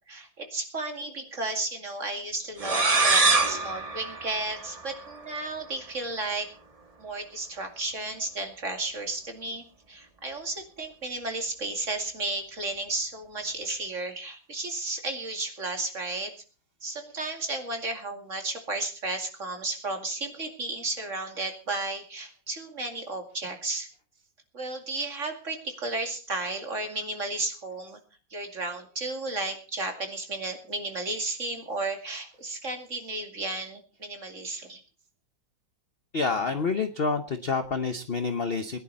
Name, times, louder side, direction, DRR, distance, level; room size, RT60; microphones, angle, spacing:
voice 1, 0.1-6.5 7.0-16.3 16.8-23.9 24.5-28.0 28.3-34.8, right 2 dB, 40° right, 4 dB, 2.7 m, -33 dB
sound 1, 2.6-5.2, right 3 dB, 25° right, 1.1 m, -24 dB
voice 2, 36.1-38.8, left 4 dB, 45° left, 8 dB, 0.8 m, -28 dB
20.5 x 11.0 x 4.1 m, 0.36 s
omnidirectional pair, 2.0 m